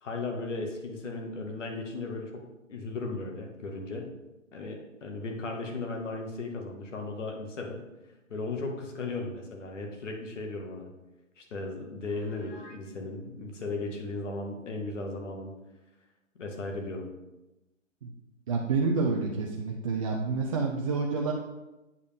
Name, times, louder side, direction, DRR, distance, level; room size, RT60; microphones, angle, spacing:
voice 1, 0.0-2.4 2.7-4.1 4.5-7.8 8.3-10.9 11.4-15.6 16.4-17.1, left 3 dB, 65° left, 2 dB, 1.8 m, -36 dB
Piano, 12.0-12.9, left 1 dB, 30° left, 1.8 m, -51 dB
voice 2, 18.5-21.3, right 4 dB, 25° right, 0 dB, 0.5 m, -28 dB
8.1 x 5.2 x 3.5 m, 1.0 s
hypercardioid pair, 135°, 39 cm